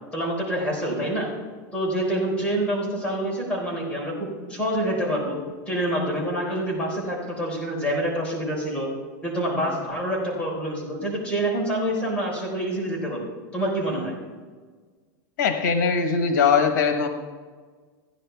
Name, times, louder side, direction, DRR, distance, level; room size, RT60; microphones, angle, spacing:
voice 1, 0.1-1.3 1.7-5.4 5.7-8.9 9.2-14.2, right 1 dB, 10° left, -3 dB, 4.1 m, -27 dB
voice 2, 15.4-17.1, left 5 dB, 80° left, 6 dB, 1.2 m, -21 dB
15.5 x 10.0 x 3.5 m, 1.5 s
supercardioid pair, 145°, 10 cm